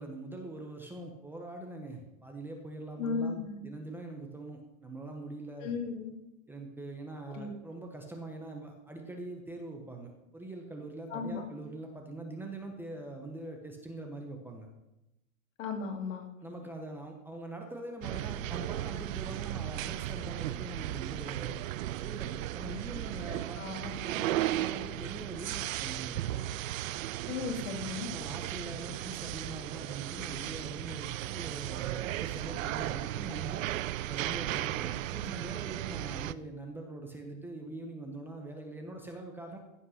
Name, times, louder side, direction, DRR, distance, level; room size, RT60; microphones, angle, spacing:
voice 1, 0.0-5.7 6.5-14.7 16.4-21.6 22.0-26.5 28.1-33.6 34.0-39.6, right 2 dB, 5° right, 2 dB, 0.9 m, -43 dB
voice 2, 3.0-3.7 5.6-6.1 7.3-7.5 11.1-11.4 15.6-16.3 23.6-24.0 27.3-28.1, left 5 dB, 65° left, 4 dB, 2.6 m, -35 dB
sound 1, 18.0-36.3, right 14 dB, 75° right, 0.6 m, -36 dB
15.5 x 5.5 x 6.3 m, 0.93 s
supercardioid pair, 155°, 40 cm